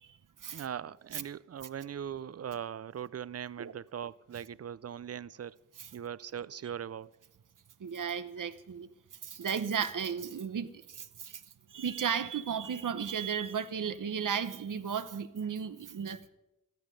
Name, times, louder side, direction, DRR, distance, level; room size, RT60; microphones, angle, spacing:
voice 1, 0.5-5.6 5.9-7.1, right 9 dB, 50° right, 0.4 m, -40 dB
voice 2, 7.8-8.9 9.2-11.4 11.7-16.3, right 7 dB, 90° right, 0.8 m, -34 dB
14.0 x 12.0 x 5.2 m
wide cardioid pair, 55°, 31 cm